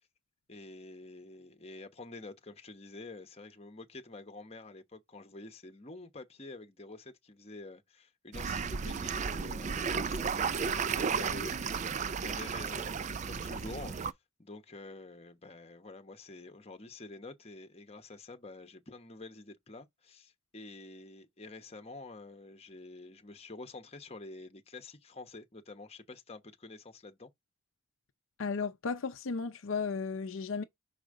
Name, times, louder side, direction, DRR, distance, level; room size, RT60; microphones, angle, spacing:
voice 1, 0.5-11.6 12.2-14.0 14.4-27.3, left 2 dB, 30° left, 1.0 m, -48 dB
sound 1, 8.3-14.1, right 5 dB, 35° right, 0.3 m, -33 dB
voice 2, 28.4-30.6, left 5 dB, 65° left, 0.6 m, -34 dB
5.8 x 5.0 x 3.7 m
head